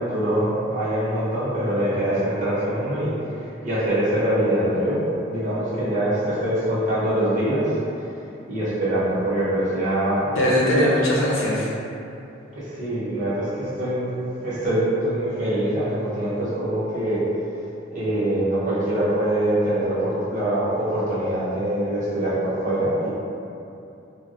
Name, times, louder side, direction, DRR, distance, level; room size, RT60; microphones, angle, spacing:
voice 1, 0.0-5.0 5.3-8.0 8.5-10.3 12.5-14.1 14.4-17.2 17.9-23.1, right 1 dB, 40° right, -11 dB, 0.9 m, -24 dB
voice 2, 10.3-11.7, equal, 90° left, -6 dB, 0.6 m, -20 dB
3.4 x 2.0 x 2.5 m, 2.7 s
head